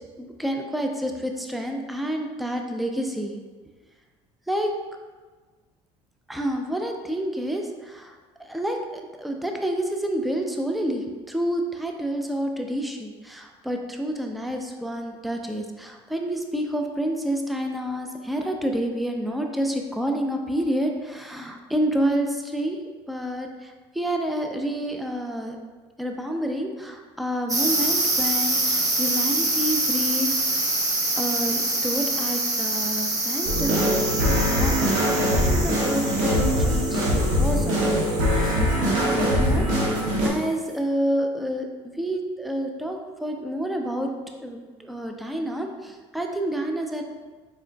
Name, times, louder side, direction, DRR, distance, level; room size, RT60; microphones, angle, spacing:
voice 1, 0.2-3.4 4.5-4.7 6.3-22.8 23.1-25.6 26.0-30.8 31.2-34.1 34.5-38.1 38.4-41.7 41.9-44.1 44.4-47.0, equal, ahead, 3 dB, 0.4 m, -29 dB
sound 1, 27.5-39.8, right 2 dB, 25° right, 0.8 m, -26 dB
sound 2, 33.4-40.3, equal, 75° right, 1.0 m, -22 dB
4.7 x 3.6 x 2.2 m, 1.4 s
supercardioid pair, 95°, 14 cm